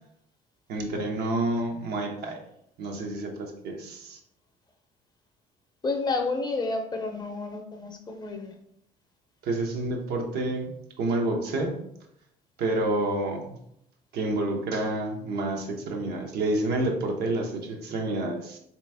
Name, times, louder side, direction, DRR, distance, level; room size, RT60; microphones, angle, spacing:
voice 1, 0.7-2.4 2.8-4.2 9.5-10.7 11.0-11.7 12.6-13.4 14.1-18.6, right 2 dB, 70° right, 2 dB, 0.8 m, -29 dB
voice 2, 5.8-8.5, left 3 dB, 25° left, 3 dB, 0.6 m, -30 dB
3.4 x 3.0 x 3.3 m, 0.76 s
cardioid pair, 110°, 17 cm